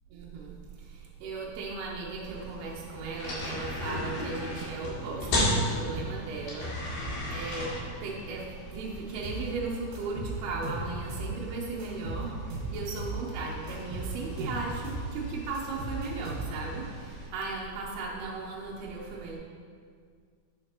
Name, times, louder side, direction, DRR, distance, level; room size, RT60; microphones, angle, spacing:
voice 1, 0.1-19.4, right 4 dB, 80° right, -3 dB, 2.6 m, -37 dB
sound 1, 2.2-17.3, left 1 dB, 70° left, 3.8 m, -36 dB
sound 2, 9.2-9.5 9.9-11.4 11.8-13.2 13.7-15.1 15.5-16.8, right 2 dB, 60° right, 2.9 m, -36 dB
8.9 x 6.2 x 2.9 m, 2.1 s
omnidirectional pair, 4.7 m